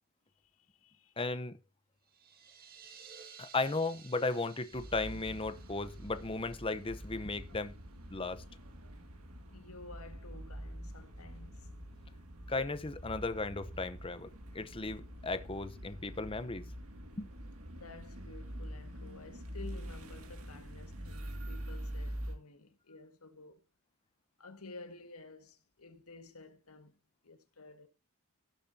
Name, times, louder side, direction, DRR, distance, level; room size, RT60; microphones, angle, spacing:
voice 1, 0.4-1.2 9.5-11.8 17.7-23.6 24.4-27.0 27.2-27.9, left 3 dB, 75° left, 1.8 m, -52 dB
voice 2, 1.2-1.6 3.4-7.7 8.1-8.4 12.5-14.3 14.5-16.6 17.2-17.3, left 3 dB, 25° left, 0.8 m, -35 dB
sound 1, 2.0-7.7, right 7 dB, 40° right, 1.9 m, -56 dB
sound 2, 4.7-22.3, equal, 75° right, 2.3 m, -45 dB
17.5 x 7.2 x 2.8 m
head